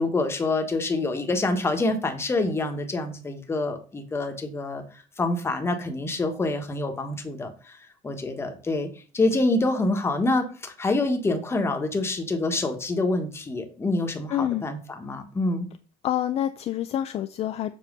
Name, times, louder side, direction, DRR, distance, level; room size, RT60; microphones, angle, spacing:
voice 1, 0.0-4.8 5.2-8.9 9.1-15.7, left 2 dB, 15° left, 5 dB, 1.2 m, -26 dB
voice 2, 14.3-14.6 16.0-17.7, left 11 dB, 40° left, 9 dB, 0.4 m, -27 dB
7.2 x 4.3 x 6.6 m, 0.38 s
cardioid pair, 175°, 16 cm